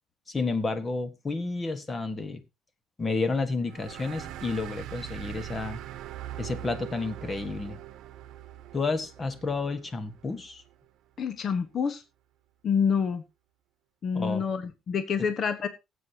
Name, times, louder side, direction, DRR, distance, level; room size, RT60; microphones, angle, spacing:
voice 1, 0.3-2.4 3.0-5.8 6.4-7.8 8.7-10.6 14.1-14.4, left 3 dB, 20° left, 10 dB, 1.5 m, -31 dB
sound 1, 3.7-10.8, right 12 dB, 65° right, 1.0 m, -42 dB
voice 2, 11.2-12.0 12.6-13.2 14.0-15.7, left 6 dB, 40° left, 9 dB, 1.3 m, -27 dB
17.5 x 8.4 x 2.9 m, 0.25 s
cardioid pair, 145°, 0 cm